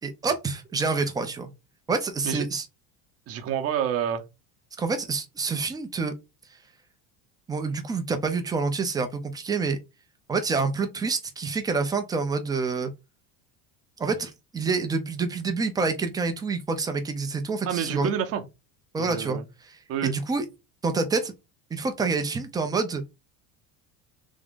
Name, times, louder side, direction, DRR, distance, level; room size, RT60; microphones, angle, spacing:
voice 1, 0.0-1.5 1.9-2.6 4.8-6.1 7.5-9.8 10.3-12.9 14.0-18.1 18.9-19.4 20.0-20.4 20.8-21.3 21.7-23.0, right 4 dB, 10° right, 0.4 m, -27 dB
voice 2, 3.3-4.2 17.6-18.4 19.0-19.5 19.9-20.1, right 8 dB, 40° right, 0.7 m, -28 dB
3.5 x 2.5 x 3.5 m
cardioid pair, 155°, 39 cm